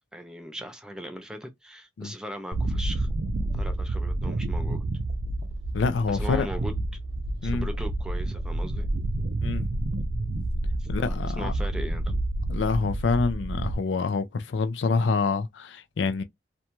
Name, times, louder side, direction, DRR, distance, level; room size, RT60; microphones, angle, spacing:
voice 1, 0.1-3.1 3.5-4.8 6.1-6.8 7.4-8.9 10.8-12.2, equal, 5° right, 0.4 m, -39 dB
sound 1, 2.5-13.7, right 1 dB, 65° right, 0.5 m, -29 dB
voice 2, 5.7-6.5 7.4-7.7 9.4-9.7 10.9-11.5 12.5-16.2, left 4 dB, 90° left, 0.4 m, -26 dB
2.6 x 2.2 x 2.9 m
head